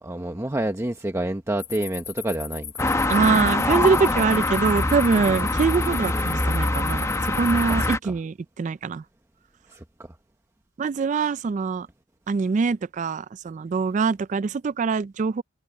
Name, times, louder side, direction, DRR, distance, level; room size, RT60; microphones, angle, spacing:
voice 1, 0.0-2.9 5.3-5.5 7.7-8.1 9.7-9.8, right 1 dB, 15° right, 0.9 m, -29 dB
sound 1, 1.6-8.0, left 9 dB, 30° left, 5.3 m, -38 dB
sound 2, 2.8-8.0, left 2 dB, 15° left, 0.8 m, -24 dB
voice 2, 3.1-9.0 10.8-11.9 12.3-15.4, right 5 dB, 40° right, 0.3 m, -23 dB
head